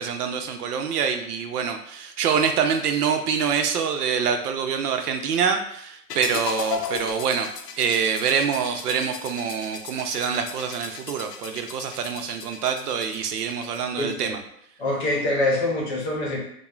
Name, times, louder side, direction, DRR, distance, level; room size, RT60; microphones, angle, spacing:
voice 1, 0.0-7.5 7.8-14.4, right 6 dB, 75° right, 6 dB, 0.5 m, -25 dB
sound 1, 6.1-14.1, left 6 dB, 80° left, 0.5 m, -36 dB
voice 2, 14.0-14.3 14.8-16.4, left 1 dB, 45° left, -3 dB, 0.8 m, -25 dB
3.0 x 2.0 x 2.3 m, 0.71 s
hypercardioid pair, 170°, 48 cm